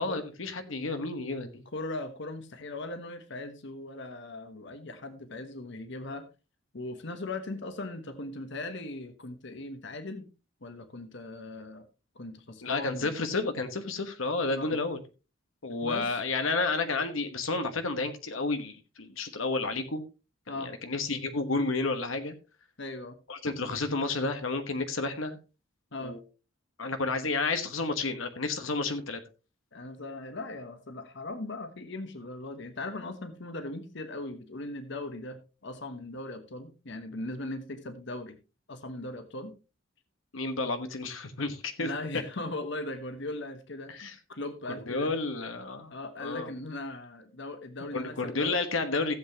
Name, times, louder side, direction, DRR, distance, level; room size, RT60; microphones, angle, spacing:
voice 1, 0.0-1.6 12.6-15.0 15.6-20.0 20.5-22.3 23.3-25.4 26.0-26.2 26.8-29.2 40.3-41.9 43.9-44.1 44.9-45.9 46.2-46.5 47.9-49.1, left 3 dB, 90° left, 7 dB, 1.3 m, -31 dB
voice 2, 1.7-6.3 6.7-10.3 10.6-11.8 12.1-13.1 14.5-14.8 15.8-16.2 20.5-20.8 22.8-23.2 25.9-26.2 29.7-38.4 38.7-39.5 41.8-43.9 44.3-45.1 45.9-48.6, left 2 dB, 65° left, 9 dB, 1.2 m, -39 dB
15.5 x 7.9 x 2.9 m, 0.31 s
head